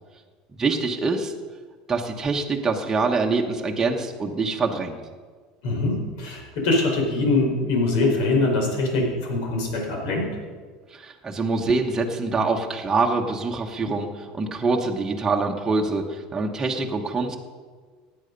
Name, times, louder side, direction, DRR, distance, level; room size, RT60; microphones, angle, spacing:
voice 1, 0.6-1.3 1.9-5.0 10.9-17.4, right 3 dB, 15° right, 1 dB, 1.2 m, -25 dB
voice 2, 5.6-10.3, left 2 dB, 70° left, 0 dB, 4.5 m, -23 dB
15.5 x 9.9 x 5.3 m, 1.5 s
supercardioid pair, 135°, 3 cm